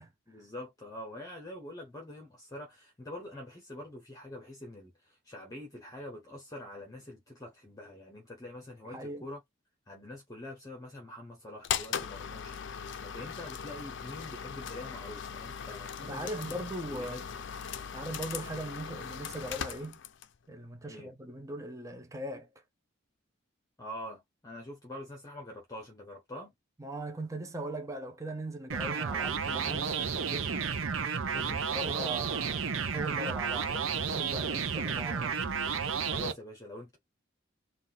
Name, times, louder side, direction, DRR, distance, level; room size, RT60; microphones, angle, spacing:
voice 1, 0.3-9.4 9.9-16.5 16.9-17.4 20.8-21.1 23.8-26.5 31.3-31.6 36.1-37.0, left 1 dB, 20° left, 1.2 m, -45 dB
voice 2, 8.8-9.3 16.0-17.2 17.9-20.0 20.5-22.5 26.8-30.7 31.3-35.4, right 1 dB, 15° right, 0.7 m, -40 dB
sound 1, 11.6-20.4, left 7 dB, 60° left, 0.5 m, -39 dB
sound 2, 28.7-36.3, right 6 dB, 75° right, 0.7 m, -32 dB
4.0 x 2.5 x 3.9 m
head